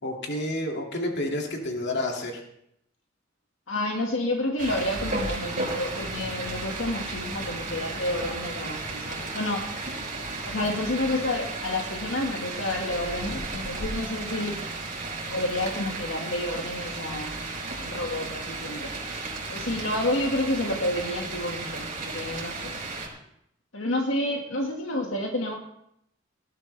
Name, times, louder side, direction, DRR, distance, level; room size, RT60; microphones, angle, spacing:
voice 1, 0.0-2.4, left 1 dB, 60° left, 1 dB, 2.3 m, -30 dB
voice 2, 3.7-9.6 10.4-14.6 15.3-17.4 17.8-19.0 19.5-22.8 23.7-25.6, left 1 dB, 85° left, 1 dB, 1.8 m, -29 dB
sound 1, 4.6-23.1, right 3 dB, 40° right, 5.7 m, -34 dB
18.0 x 12.0 x 3.3 m, 0.76 s
head